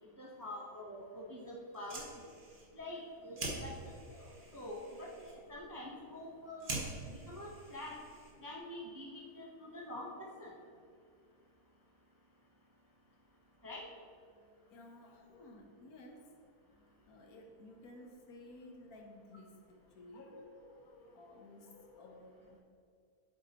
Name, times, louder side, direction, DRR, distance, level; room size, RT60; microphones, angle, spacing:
voice 1, 0.2-2.3 2.7-8.0 8.4-10.5 13.6-13.8, left 1 dB, 20° right, -2 dB, 0.5 m, -46 dB
Fire, 1.7-8.6, right 2 dB, 35° right, 1.4 m, -46 dB
voice 2, 14.7-16.3 17.1-22.6, left 1 dB, 75° left, 2 dB, 1.4 m, -54 dB
8.3 x 7.4 x 2.9 m, 2.3 s
omnidirectional pair, 1.6 m